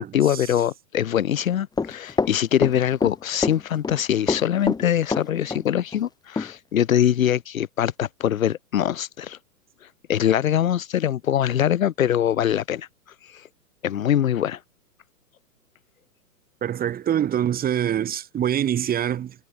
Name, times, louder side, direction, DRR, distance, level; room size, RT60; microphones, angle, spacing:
voice 1, 0.0-9.4 10.1-12.9 13.2-13.5 13.8-14.6, left 10 dB, 55° left, 3.5 m, -23 dB
Run, 1.8-3.1 3.4-4.0 4.3-5.6 5.9-6.0 6.4-6.5, left 4 dB, 10° left, 7.1 m, -25 dB
voice 2, 16.6-19.3, right 10 dB, 20° right, 6.7 m, -24 dB
figure-of-eight pair, 120°, 49 cm